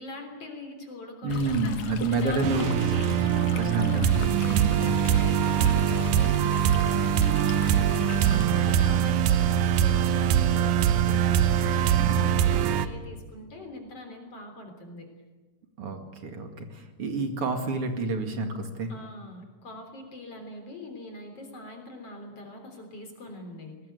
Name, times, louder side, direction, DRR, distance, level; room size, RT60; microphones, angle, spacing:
voice 1, 0.0-4.1 4.4-7.8 8.5-15.1 18.9-23.8, left 2 dB, 45° left, 4 dB, 4.4 m, -43 dB
voice 2, 1.2-2.7 3.5-5.0 8.4-8.8 12.0-12.2 15.8-18.9, right 3 dB, 45° right, 5 dB, 2.8 m, -29 dB
Stream, 1.3-8.4, left 7 dB, 65° left, 2.4 m, -38 dB
sound 1, 2.4-12.9, right 9 dB, 70° right, 2.2 m, -23 dB
22.0 x 19.5 x 9.4 m, 1.3 s
omnidirectional pair, 3.8 m